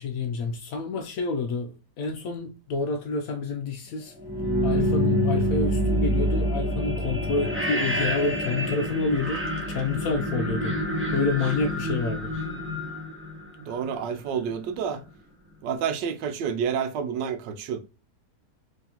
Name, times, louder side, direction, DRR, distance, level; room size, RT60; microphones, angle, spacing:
voice 1, 0.0-1.7 2.0-4.1 4.6-9.4 9.7-10.7 11.1-12.3, left 3 dB, 70° left, 0.9 m, -28 dB
sound 1, 4.2-14.0, equal, 10° right, 0.6 m, -27 dB
voice 2, 13.6-15.0 15.6-17.8, right 7 dB, 85° right, 1.3 m, -29 dB
3.7 x 3.3 x 2.8 m
omnidirectional pair, 1.9 m